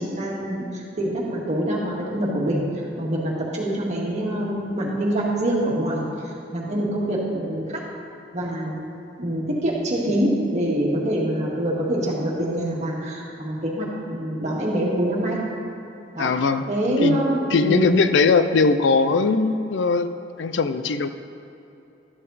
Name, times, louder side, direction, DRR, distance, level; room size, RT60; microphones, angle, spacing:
voice 1, 0.0-2.6 3.0-7.8 8.3-8.7 9.2-15.4 16.1-16.3 16.7-17.8, right 1 dB, 40° right, -4 dB, 1.9 m, -25 dB
voice 2, 16.2-16.7 17.0-17.2 17.5-21.1, left 4 dB, 80° left, 11 dB, 0.4 m, -20 dB
12.0 x 7.5 x 4.1 m, 2.9 s
head